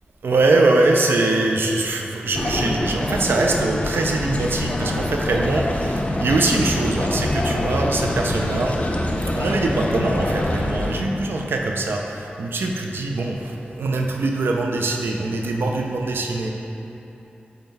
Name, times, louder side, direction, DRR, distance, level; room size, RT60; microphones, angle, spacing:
voice 1, 0.2-8.8 9.3-16.5, right 2 dB, 80° right, 1 dB, 0.4 m, -22 dB
sound 1, 2.3-11.0, left 1 dB, 40° left, 0.5 m, -25 dB
3.7 x 3.4 x 4.0 m, 3.0 s
cardioid pair, 45°, 4 cm